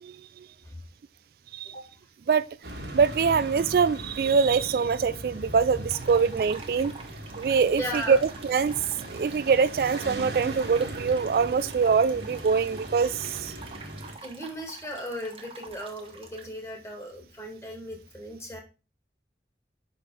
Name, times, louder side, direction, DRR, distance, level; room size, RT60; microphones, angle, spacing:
voice 1, 0.0-0.5 1.5-1.7 2.3-2.4 2.9-6.9 7.4-8.7 9.1-13.6, right 5 dB, 55° right, 0.3 m, -24 dB
sound 1, 2.6-14.2, right 1 dB, 75° right, 1.8 m, -39 dB
sound 2, 5.9-16.4, right 4 dB, 30° right, 1.2 m, -47 dB
voice 2, 7.8-8.2 14.2-18.6, equal, 15° left, 1.9 m, -37 dB
6.0 x 5.3 x 4.8 m
head